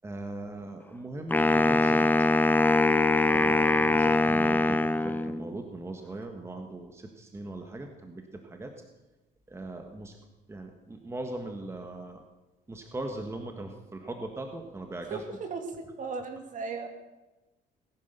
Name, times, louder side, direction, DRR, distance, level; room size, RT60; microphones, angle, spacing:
voice 1, 0.0-2.3 3.3-8.7 9.5-10.2 10.5-12.2 12.7-15.2, right 2 dB, 15° right, 4 dB, 1.5 m, -39 dB
Wind instrument woodwind instrument, 1.3-5.5, left 2 dB, 10° left, 0.6 m, -23 dB
voice 2, 15.1-16.9, right 4 dB, 50° right, 5 dB, 2.8 m, -36 dB
19.0 x 10.5 x 6.8 m, 1.1 s
cardioid pair, 110°, 17 cm